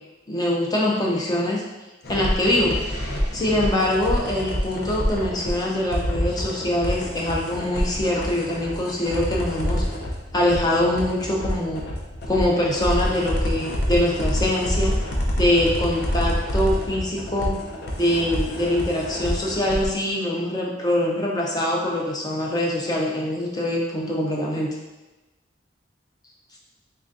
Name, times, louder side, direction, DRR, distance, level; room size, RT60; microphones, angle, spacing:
voice 1, 0.3-1.6 2.1-2.8 3.3-9.8 10.3-11.8 12.3-15.0 15.4-17.6 18.0-24.7, left 1 dB, 20° left, -3 dB, 0.5 m, -23 dB
sound 1, 2.0-19.9, equal, 60° left, 0.7 m, -27 dB
3.7 x 3.3 x 2.5 m, 1.1 s
head